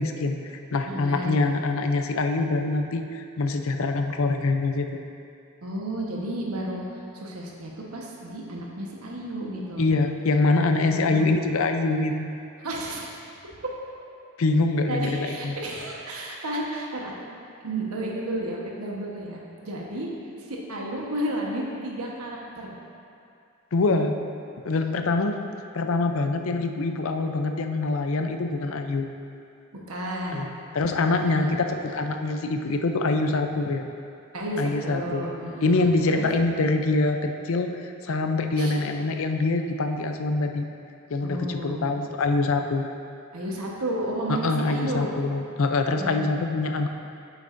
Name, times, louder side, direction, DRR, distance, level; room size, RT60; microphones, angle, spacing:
voice 1, 0.0-5.0 9.8-12.3 14.4-15.6 23.7-24.2 24.7-25.4 25.7-29.1 30.3-30.5 30.7-33.8 34.6-35.2 35.6-40.6 41.1-42.9 44.3-46.9, left 3 dB, 65° left, 6 dB, 0.5 m, -24 dB
voice 2, 0.9-1.4 5.6-9.9 10.8-11.4 12.6-13.2 14.9-17.3 17.6-20.1 20.5-22.8 29.7-30.5 31.1-31.6 34.3-36.3 38.6-38.8 41.2-41.9 43.3-45.1 45.9-46.5, right 1 dB, 80° right, -2 dB, 1.2 m, -32 dB
9.4 x 7.1 x 2.6 m, 2.5 s
head